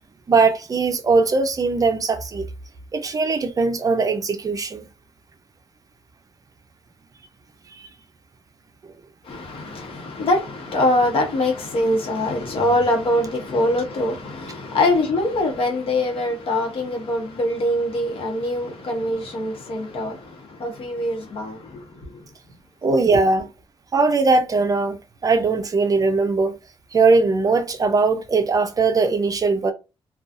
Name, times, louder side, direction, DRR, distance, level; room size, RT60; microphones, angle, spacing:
voice 1, 0.3-2.5 2.9-4.8 22.8-23.5 23.9-25.0 25.2-26.6 26.9-29.7, right 4 dB, 35° right, 0.5 m, -20 dB
voice 2, 9.3-20.1 20.6-21.6, left 1 dB, 65° left, 1.0 m, -23 dB
2.5 x 2.3 x 2.5 m
cardioid pair, 90°, 10 cm